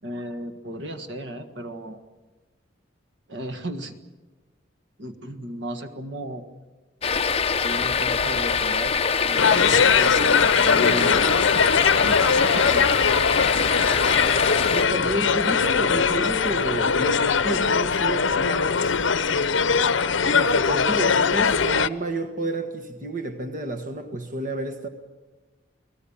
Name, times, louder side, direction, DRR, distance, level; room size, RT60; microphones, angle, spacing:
voice 1, 0.0-2.0 3.3-4.0 5.0-6.5 7.6-8.9 9.2-12.9, right 1 dB, 65° right, 1.7 m, -35 dB
sound 1, 7.0-14.8, left 5 dB, 30° left, 0.8 m, -24 dB
sound 2, 9.4-21.9, left 5 dB, 70° left, 0.8 m, -21 dB
voice 2, 14.7-19.1 20.3-24.9, right 1 dB, 40° right, 1.5 m, -30 dB
29.5 x 19.0 x 7.2 m
head